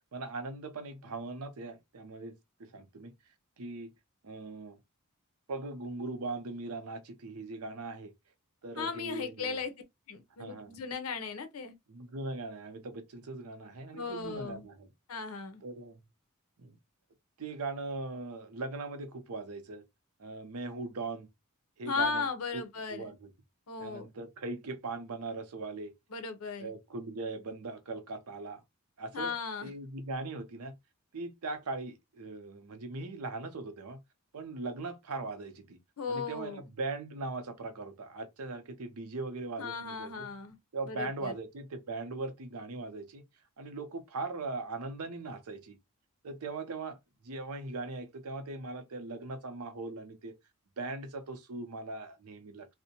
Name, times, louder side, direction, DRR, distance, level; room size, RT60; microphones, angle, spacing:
voice 1, 0.1-3.1 3.6-3.9 4.2-4.8 5.5-8.1 8.6-9.6 10.4-10.7 11.9-14.9 15.6-16.0 16.6-16.8 17.4-19.8 20.2-21.3 21.8-22.2 22.5-22.6 22.9-23.3 23.8-25.9 26.6-28.6 29.0-29.3 29.6-30.8 31.1-34.0 34.3-35.8 36.1-40.3 40.7-43.2 43.6-45.8 46.2-47.0 47.2-50.3 50.8-52.7, right 3 dB, 85° right, 0.6 m, -40 dB
voice 2, 8.8-9.7 10.1-11.7 13.9-14.7 15.1-15.6 21.9-23.1 23.7-24.1 26.1-26.7 29.1-29.7 36.0-36.6 39.6-40.6 40.9-41.3, left 5 dB, 75° left, 0.7 m, -36 dB
2.6 x 2.1 x 2.8 m
head